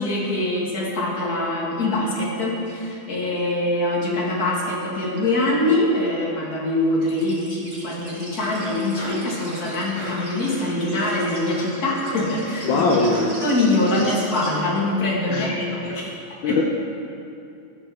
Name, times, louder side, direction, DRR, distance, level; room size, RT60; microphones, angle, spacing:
voice 1, 0.0-13.1 13.4-16.1 16.4-16.6, left 1 dB, 50° left, -3 dB, 2.3 m, -23 dB
sound 1, 7.0-14.5, right 1 dB, 25° right, 2.4 m, -40 dB
sound 2, 8.4-13.4, equal, 35° left, 3.5 m, -38 dB
voice 2, 12.6-13.4 15.3-15.5 15.9-16.0 16.4-16.6, left 3 dB, 80° left, 0 dB, 1.5 m, -21 dB
13.5 x 6.4 x 6.1 m, 2.6 s
omnidirectional pair, 2.1 m